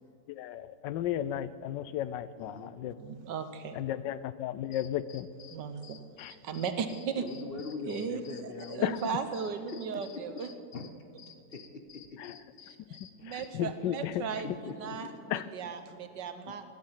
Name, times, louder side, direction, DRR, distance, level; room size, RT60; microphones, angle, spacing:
voice 1, 0.3-3.0 3.7-5.3 6.2-6.3 8.8-9.0 12.2-12.4 13.2-14.2 15.3-15.5, left 12 dB, 85° left, 16 dB, 1.3 m, -34 dB
voice 2, 2.4-2.7 7.2-9.0 9.7-10.4 10.7-10.9 11.5-12.4 14.4-15.2 16.5-16.6, left 4 dB, 45° left, 7 dB, 0.8 m, -42 dB
voice 3, 3.0-3.8 5.5-6.0 6.3-7.2 7.9-8.2 8.7-10.5 12.9-16.6, right 6 dB, 80° right, 9 dB, 1.7 m, -36 dB
sound 1, 4.7-13.5, left 8 dB, 60° left, 1.1 m, -53 dB
15.5 x 11.5 x 7.5 m, 2.4 s
omnidirectional pair, 1.9 m